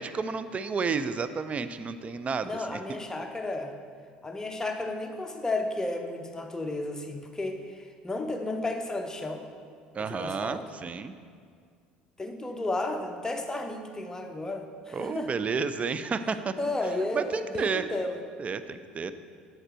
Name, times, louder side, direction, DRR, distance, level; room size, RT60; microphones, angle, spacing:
voice 1, 0.0-2.8 9.9-11.1 14.9-16.5 17.1-17.9 18.4-19.1, right 5 dB, 30° right, 11 dB, 0.5 m, -31 dB
voice 2, 2.4-3.7 4.2-9.4 9.9-10.6 12.2-15.3 16.6-18.2, left 2 dB, 15° left, 4 dB, 0.9 m, -33 dB
7.9 x 6.6 x 4.4 m, 2.1 s
figure-of-eight pair, 60°, 4 cm